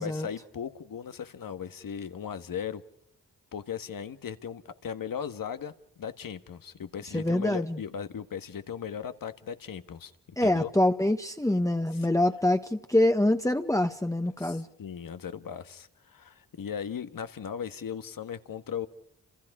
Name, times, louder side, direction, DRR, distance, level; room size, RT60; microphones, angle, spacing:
voice 1, 0.0-2.8 3.5-10.1 10.4-10.7 11.9-12.1 14.4-18.9, left 8 dB, 80° left, 1.6 m, -37 dB
voice 2, 7.1-7.8 10.4-14.7, left 1 dB, 10° left, 1.2 m, -25 dB
30.0 x 27.0 x 4.9 m
cardioid pair, 55°, 34 cm